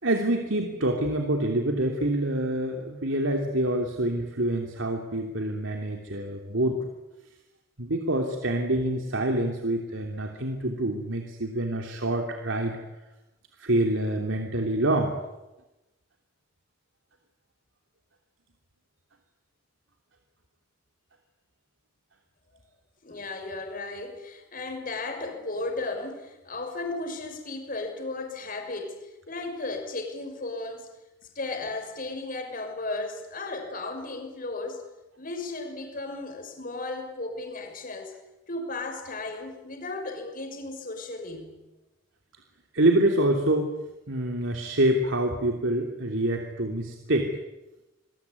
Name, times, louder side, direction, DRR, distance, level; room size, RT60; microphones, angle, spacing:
voice 1, 0.0-6.9 7.8-12.8 13.6-15.1 42.7-43.7 44.1-47.3, right 1 dB, 75° right, 3 dB, 3.0 m, -26 dB
voice 2, 23.0-30.9 31.3-34.8 35.2-38.1 38.5-41.6, left 2 dB, 45° left, 4 dB, 6.1 m, -35 dB
27.5 x 22.0 x 9.6 m, 1.0 s
head